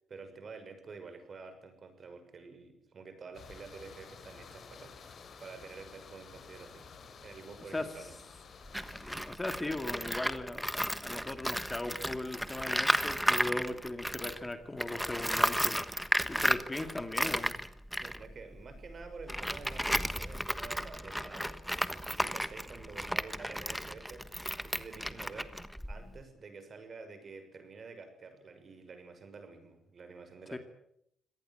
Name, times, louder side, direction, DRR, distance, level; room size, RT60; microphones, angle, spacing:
voice 1, 0.1-4.9 5.4-6.9 7.2-8.2 18.0-24.2 24.6-25.5 25.9-30.6, right 4 dB, 45° right, 8 dB, 6.3 m, -49 dB
sound 1, 3.3-9.3, left 5 dB, 55° left, 3.7 m, -52 dB
voice 2, 7.7-8.1 9.0-17.5 26.0-26.2 30.5-30.6, left 2 dB, 15° left, 8 dB, 2.2 m, -39 dB
Tools, 8.6-14.5 14.8-26.2, equal, ahead, 1.3 m, -33 dB
25.0 x 18.5 x 8.9 m, 0.73 s
cardioid pair, 115°, 0 cm